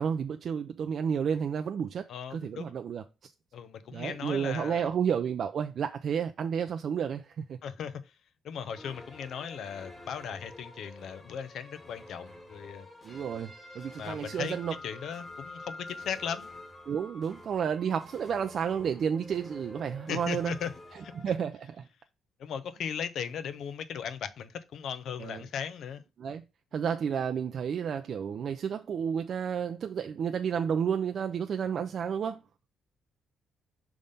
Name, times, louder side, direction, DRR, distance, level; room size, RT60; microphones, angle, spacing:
voice 1, 0.0-3.3 3.9-7.6 13.0-14.8 16.9-20.6 21.2-21.8 25.2-25.4 26.2-26.4 26.7-32.4, right 7 dB, 60° right, 0.4 m, -31 dB
voice 2, 2.1-2.8 3.5-4.9 7.6-8.0 8.4-12.9 14.0-14.6 14.8-16.5 20.1-20.7 21.0-21.1 22.4-26.0, left 7 dB, 70° left, 0.7 m, -37 dB
sound 1, 8.8-21.3, left 1 dB, 20° left, 1.7 m, -48 dB
5.3 x 3.6 x 5.4 m
cardioid pair, 90°, 0 cm